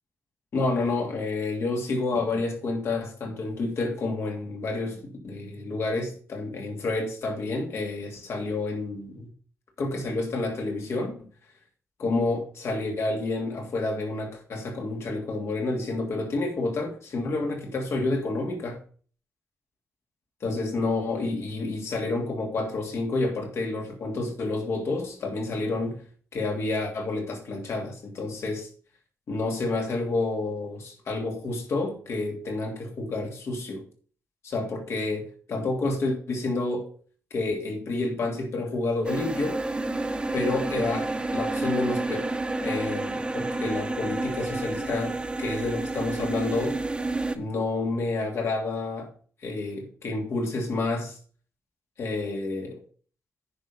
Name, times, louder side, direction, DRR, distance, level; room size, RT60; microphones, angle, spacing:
voice 1, 0.5-9.3 9.8-11.1 12.0-18.8 20.4-26.0 26.3-28.7 29.3-33.8 34.4-36.9 37.3-39.6 40.3-42.3 42.6-46.8 47.3-49.1 49.4-51.2 52.0-52.8, left 2 dB, 65° left, 2.9 m, -29 dB
sound 1, 39.0-47.4, right 2 dB, 20° right, 1.1 m, -30 dB
10.0 x 5.5 x 5.6 m
cardioid pair, 95°, 5 cm